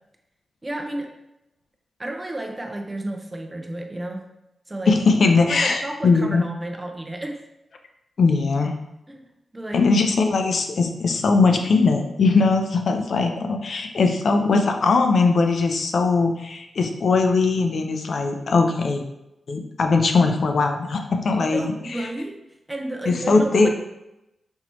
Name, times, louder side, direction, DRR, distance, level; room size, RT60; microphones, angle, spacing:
voice 1, 0.6-1.1 2.0-4.2 4.7-5.0 5.5-7.4 9.1-9.9 21.5-22.4 22.7-23.7, right 1 dB, 20° right, 3 dB, 0.7 m, -32 dB
voice 2, 4.9-6.4 8.2-8.7 9.7-19.0 19.5-21.7 23.1-23.7, left 4 dB, 70° left, 4 dB, 0.5 m, -20 dB
5.4 x 3.0 x 3.0 m, 0.88 s
cardioid pair, 65°, 0 cm